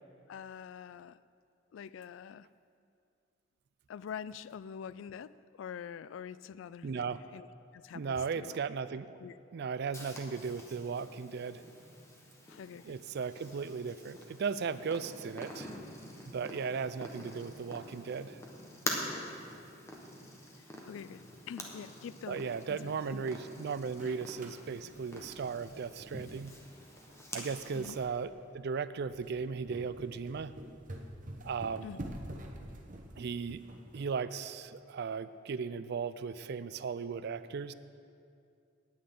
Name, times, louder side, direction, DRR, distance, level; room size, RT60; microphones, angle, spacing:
voice 1, 0.3-1.2 1.7-2.5 3.9-7.5 7.7-8.6 9.2-9.4 12.5-13.0 17.2-17.3 20.6-23.2 24.0-24.1 27.7-28.0 31.8-32.1, left 7 dB, 70° left, 17 dB, 0.3 m, -46 dB
voice 2, 6.8-7.2 7.9-9.1 9.5-11.6 12.8-15.7 16.3-18.4 22.3-26.6 27.3-30.5 31.4-31.9 33.2-33.6 33.9-37.7, right 5 dB, 60° right, 14 dB, 0.4 m, -36 dB
Purr, 9.9-28.0, left 1 dB, 15° left, 1.3 m, -46 dB
sound 1, 23.9-34.0, right 1 dB, 45° right, 1.1 m, -48 dB
18.5 x 8.7 x 3.8 m, 2.4 s
head